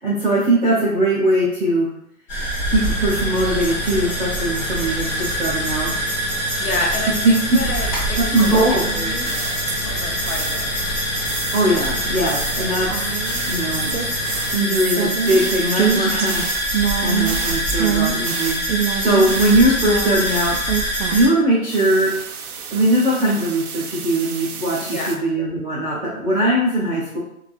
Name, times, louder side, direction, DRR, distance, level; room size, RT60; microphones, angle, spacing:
voice 1, 0.0-1.9 2.7-5.9 7.2-7.6 8.1-8.8 11.5-12.9 13.5-13.9 14.5-16.5 17.0-18.6 19.0-20.6 21.1-22.1 22.7-27.2, right 1 dB, 5° left, -26 dB, 0.7 m, -20 dB
sound 1, 2.3-21.3, equal, 30° left, 1.2 m, -25 dB
sound 2, 2.7-14.5, equal, 85° left, 1.2 m, -33 dB
voice 2, 6.6-9.6 9.9-10.7 24.8-25.2, left 2 dB, 70° left, 0 dB, 0.9 m, -29 dB
sound 3, 8.4-10.0 10.3-10.8 11.3-21.4 21.7-25.2, right 8 dB, 75° right, 0.5 m, -27 dB
2.8 x 2.4 x 2.5 m, 0.73 s
hypercardioid pair, 175°, 45 cm